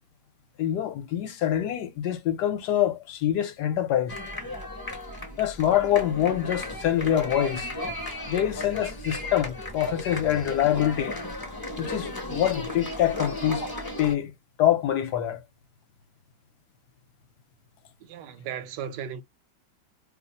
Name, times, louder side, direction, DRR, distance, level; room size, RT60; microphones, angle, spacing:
voice 1, 0.6-4.1 5.4-7.7 8.3-11.2 11.8-13.7 14.0-14.3 14.6-15.4, left 11 dB, 75° left, 1.2 m, -25 dB
sound 1, 4.1-14.1, left 1 dB, 30° left, 0.4 m, -35 dB
voice 2, 18.0-19.2, right 8 dB, 80° right, 1.2 m, -36 dB
2.9 x 2.0 x 4.0 m
omnidirectional pair, 1.9 m